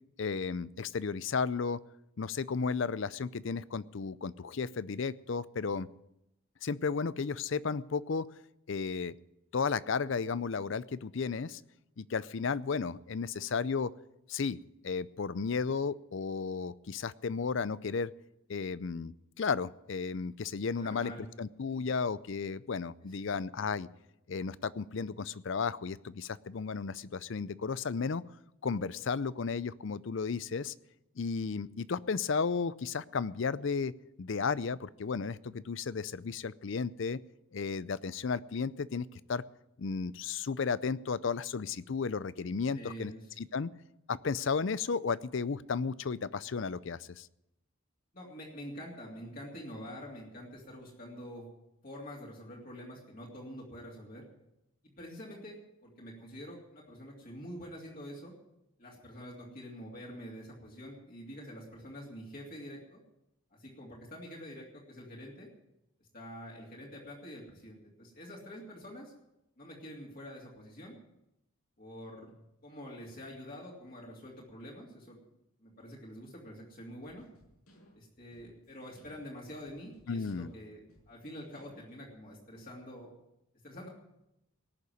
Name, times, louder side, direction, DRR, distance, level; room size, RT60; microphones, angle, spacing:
voice 1, 0.2-1.8 2.2-5.9 6.6-8.3 8.7-9.1 9.5-11.6 12.0-13.9 14.3-18.1 18.5-21.1 21.4-23.9 24.3-28.2 28.6-30.7 31.2-33.9 34.2-37.2 37.5-39.4 39.8-43.1 43.4-43.7 44.1-47.3 80.1-80.5, left 5 dB, 55° left, 18 dB, 0.5 m, -34 dB
voice 2, 20.8-21.3 21.7-21.8 23.0-23.4 42.7-43.4 48.1-51.5 51.8-54.2 54.8-58.3 58.8-63.0 63.5-65.5 66.0-69.1 69.6-70.9 71.8-75.2 75.6-77.2 77.9-83.1 83.6-83.9, equal, 40° left, -4 dB, 2.9 m, -46 dB
sound 1, 77.0-82.2, equal, 80° left, 6.2 m, -63 dB
18.0 x 6.9 x 9.3 m, 0.86 s
head